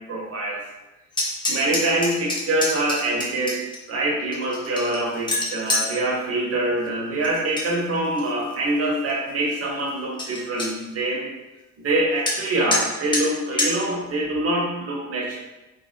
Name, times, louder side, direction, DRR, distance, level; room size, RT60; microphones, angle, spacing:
voice 1, 0.1-0.6 1.5-3.6 3.9-11.3 11.8-15.4, right 1 dB, 30° right, -2 dB, 0.7 m, -24 dB
sound 1, 1.1-3.8 4.3-5.9 7.2-7.7 8.0-8.5 9.1-9.2 9.5-9.6 9.9-10.0 10.2-10.7 12.3-12.4 12.7-12.8 13.1-13.2 13.6-13.7, left 2 dB, 10° left, 0.4 m, -26 dB
2.4 x 2.1 x 2.4 m, 1.0 s
figure-of-eight pair, 45°, 48 cm